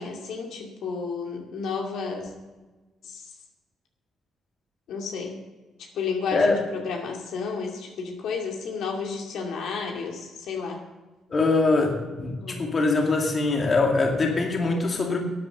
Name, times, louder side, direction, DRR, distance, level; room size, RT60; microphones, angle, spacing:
voice 1, 0.0-2.3 3.0-3.3 4.9-5.3 5.8-10.8 12.4-12.7, left 5 dB, 80° left, 1 dB, 2.4 m, -32 dB
voice 2, 11.3-15.2, left 3 dB, 35° left, 2 dB, 2.2 m, -23 dB
12.5 x 8.8 x 6.7 m, 1.2 s
cardioid pair, 90°, 0 cm